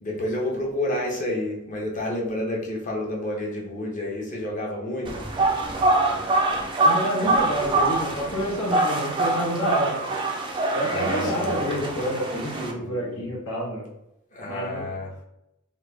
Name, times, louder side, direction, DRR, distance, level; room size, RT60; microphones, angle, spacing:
voice 1, 0.0-5.3 10.8-11.8 12.7-13.3 14.3-15.1, left 1 dB, 35° left, -2 dB, 0.7 m, -30 dB
sound 1, 5.0-12.7, right 2 dB, 25° right, 0.3 m, -24 dB
voice 2, 6.8-10.0 10.7-13.9 14.4-14.9, equal, 90° left, -5 dB, 1.0 m, -28 dB
3.1 x 2.2 x 3.1 m, 0.86 s
head